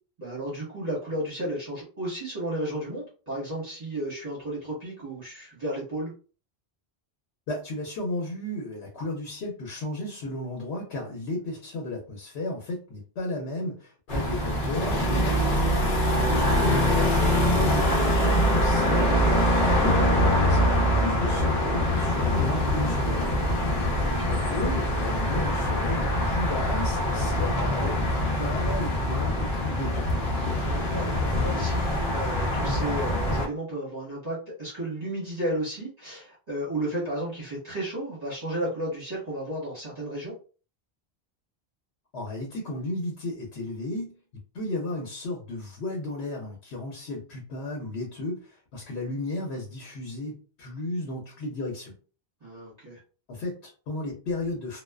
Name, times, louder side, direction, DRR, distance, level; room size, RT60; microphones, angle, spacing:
voice 1, 0.2-6.1 16.0-16.3 24.0-24.4 30.5-40.3 52.4-53.0, right 1 dB, 40° right, -7 dB, 1.2 m, -33 dB
voice 2, 7.5-15.5 16.5-23.4 24.2-30.1 42.1-44.1 44.5-51.9 53.3-54.8, left 2 dB, 90° left, 0 dB, 0.9 m, -34 dB
sound 1, 14.1-33.5, left 1 dB, 55° left, 0.8 m, -24 dB
2.4 x 2.3 x 2.2 m, 0.37 s
omnidirectional pair, 1.0 m